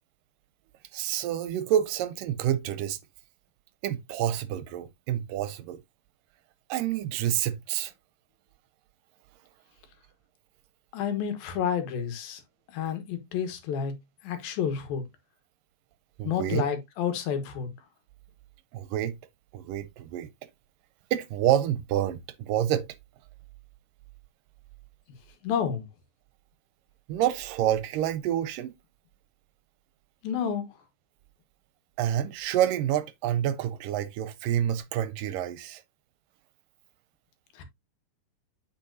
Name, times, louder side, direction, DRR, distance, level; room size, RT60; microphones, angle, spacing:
voice 1, 0.9-3.0 3.8-5.8 6.7-7.9 16.2-16.6 18.7-19.2 19.5-20.3 21.1-22.9 27.1-28.7 32.0-35.8, right 11 dB, 80° right, 2.2 m, -28 dB
voice 2, 10.9-12.4 12.7-13.9 14.2-15.0 16.2-17.7 25.4-25.9 30.2-30.8 37.5-37.6, left 7 dB, 80° left, 3.1 m, -30 dB
8.7 x 5.6 x 2.7 m
omnidirectional pair, 4.1 m